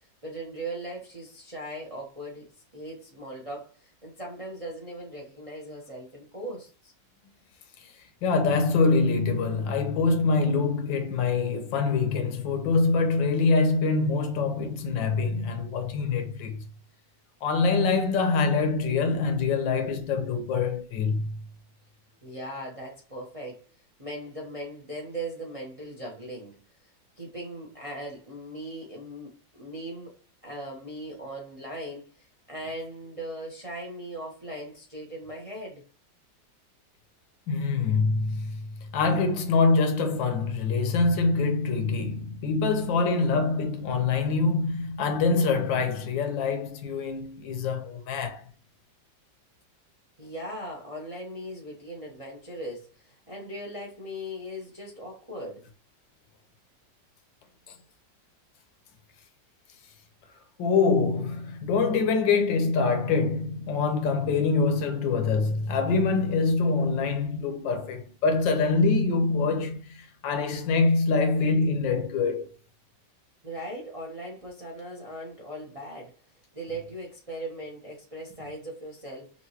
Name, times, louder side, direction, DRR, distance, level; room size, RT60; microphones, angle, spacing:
voice 1, 0.2-6.9 22.2-23.6 24.0-26.6 27.2-30.1 30.4-35.8 50.2-55.7 73.4-76.1 76.5-79.3, right 1 dB, 30° right, 0.7 m, -39 dB
voice 2, 8.2-16.6 17.4-21.4 37.5-48.4 60.6-72.5, left 4 dB, 75° left, 1.4 m, -25 dB
5.7 x 2.6 x 2.9 m
omnidirectional pair, 2.1 m